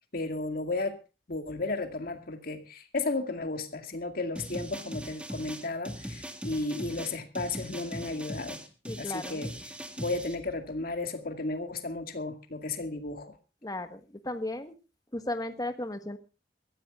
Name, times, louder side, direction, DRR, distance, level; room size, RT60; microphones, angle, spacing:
voice 1, 0.1-1.0 1.3-8.6 9.0-9.5 10.0-13.4, left 2 dB, 55° left, 2.1 m, -34 dB
sound 1, 4.4-10.4, equal, 5° right, 1.8 m, -40 dB
voice 2, 8.8-9.4 13.6-14.8 15.1-16.2, left 1 dB, 20° left, 1.4 m, -35 dB
23.0 x 14.5 x 2.4 m
head